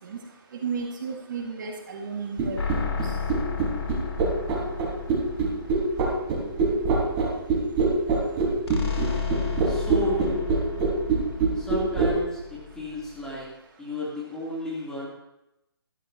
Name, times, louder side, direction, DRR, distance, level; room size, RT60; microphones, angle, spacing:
voice 1, 0.6-2.6, right 5 dB, 50° right, 0 dB, 2.1 m, -33 dB
sound 1, 2.4-12.1, right 5 dB, 25° right, 4.8 m, -23 dB
sound 2, 2.6-7.1 8.7-13.4, left 6 dB, 90° left, 2.8 m, -33 dB
voice 2, 9.6-10.5 11.5-13.5 13.8-15.1, left 1 dB, 5° left, -7 dB, 3.4 m, -33 dB
17.0 x 13.5 x 3.0 m, 0.89 s
hypercardioid pair, 155°, 13 cm